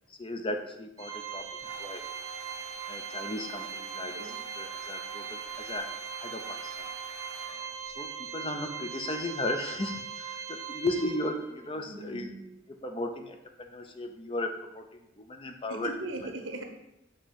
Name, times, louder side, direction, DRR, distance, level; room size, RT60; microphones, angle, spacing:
voice 1, 0.2-2.0 2.9-4.2 4.6-5.9 6.2-6.9 8.0-12.3 12.8-15.9, left 2 dB, 25° left, 5 dB, 0.5 m, -35 dB
Organ, 1.0-11.6, right 7 dB, 15° right, 0.7 m, -40 dB
sound 1, 1.3-8.0, right 3 dB, 65° right, 1.0 m, -48 dB
voice 2, 11.7-12.4 15.7-16.6, right 2 dB, 85° right, 4 dB, 0.9 m, -39 dB
7.2 x 2.8 x 5.0 m, 0.87 s
head